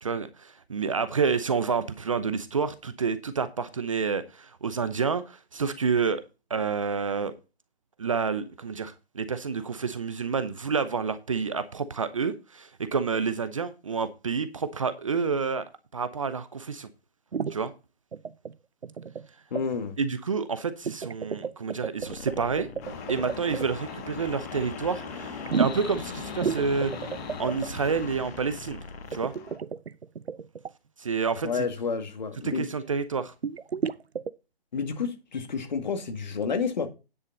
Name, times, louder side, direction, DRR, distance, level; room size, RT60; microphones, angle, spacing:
voice 1, 0.0-6.2 6.5-7.3 8.0-15.6 15.9-16.9 17.5-17.7 20.0-22.7 23.1-26.9 27.4-28.8 29.1-29.3 31.0-31.7 32.4-33.3, right 5 dB, 30° right, 0.8 m, -29 dB
sound 1, 17.3-17.6 18.1-18.5 18.8-19.3 19.5-19.6 20.9-23.7 25.5-26.0 26.4-27.7 29.1-30.7 33.4-34.3, right 6 dB, 80° right, 0.8 m, -31 dB
voice 2, 19.5-20.0 31.4-32.7 34.7-36.9, left 5 dB, 45° left, 2.1 m, -30 dB
sound 2, 22.0-29.2, left 4 dB, 75° left, 1.2 m, -43 dB
sound 3, 22.8-29.6, left 5 dB, 15° left, 1.4 m, -41 dB
9.8 x 8.4 x 3.9 m
figure-of-eight pair, 155°, 31 cm